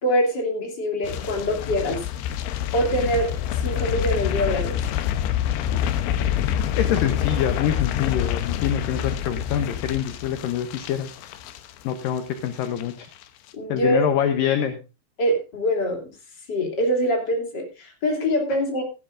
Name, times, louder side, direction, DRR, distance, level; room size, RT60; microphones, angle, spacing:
voice 1, 0.0-2.0 2.7-3.3 3.6-4.8 13.5-14.1 15.2-16.0 16.5-18.8, equal, 25° left, 2 dB, 3.1 m, -24 dB
sound 1, 1.0-12.2 12.5-12.8 13.1-13.2, left 10 dB, 90° left, 3.3 m, -27 dB
voice 2, 6.8-11.1 11.8-13.1 13.7-14.8, left 9 dB, 70° left, 8 dB, 2.2 m, -25 dB
15.5 x 12.5 x 2.6 m, 0.29 s
omnidirectional pair, 5.1 m